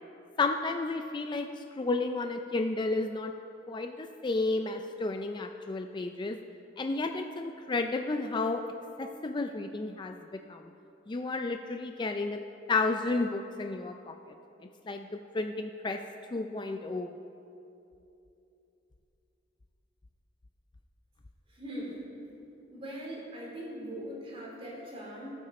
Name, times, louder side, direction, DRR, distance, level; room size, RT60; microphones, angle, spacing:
voice 1, 0.4-3.3 3.7-6.4 6.8-8.6 9.0-10.7 11.1-12.4 12.7-14.2 14.9-16.0 16.3-17.1, left 3 dB, 25° left, 6 dB, 0.4 m, -32 dB
voice 2, 21.5-22.1 22.7-25.3, equal, 30° right, -4 dB, 3.0 m, -41 dB
18.5 x 8.0 x 4.2 m, 2.9 s
head